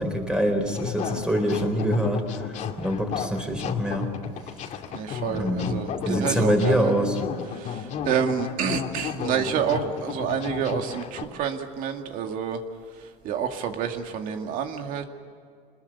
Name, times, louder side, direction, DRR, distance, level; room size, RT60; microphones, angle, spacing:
voice 1, 0.0-2.2 2.8-4.1 5.3-5.8 6.1-7.2, equal, 5° right, 4 dB, 4.2 m, -24 dB
sound 1, 0.7-11.2, left 8 dB, 45° left, 2.4 m, -33 dB
voice 2, 4.9-6.9 8.1-12.6 13.2-15.0, right 8 dB, 55° right, 5 dB, 2.3 m, -28 dB
27.0 x 21.0 x 7.2 m, 2.3 s
cardioid pair, 140°, 16 cm